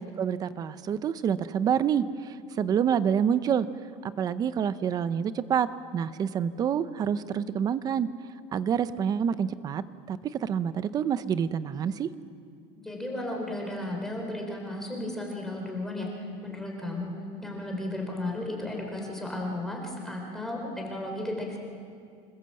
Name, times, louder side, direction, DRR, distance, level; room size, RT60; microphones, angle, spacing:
voice 1, 0.0-3.7 4.0-8.1 8.5-12.1, right 8 dB, 25° right, 14 dB, 0.7 m, -27 dB
voice 2, 12.8-17.1 17.4-21.6, left 1 dB, 5° left, 0 dB, 4.0 m, -34 dB
26.5 x 20.5 x 7.7 m, 2.3 s
cardioid pair, 175°, 14 cm